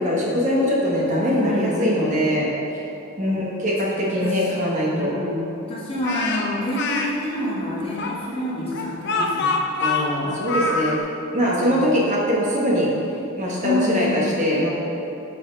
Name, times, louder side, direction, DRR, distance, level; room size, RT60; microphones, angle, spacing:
voice 1, 0.0-2.8 3.2-5.1 9.8-11.0 11.3-12.9 13.4-14.7, equal, 35° right, -4 dB, 1.0 m, -22 dB
voice 2, 1.3-2.1 3.2-3.5 4.2-4.3 4.9-9.6 10.2-10.5 11.4-11.9 13.6-14.4, left 1 dB, 25° left, -6 dB, 1.1 m, -28 dB
Speech, 6.0-7.1 8.0-11.0, left 3 dB, 50° left, 0.5 m, -25 dB
6.2 x 4.1 x 5.1 m, 2.9 s
head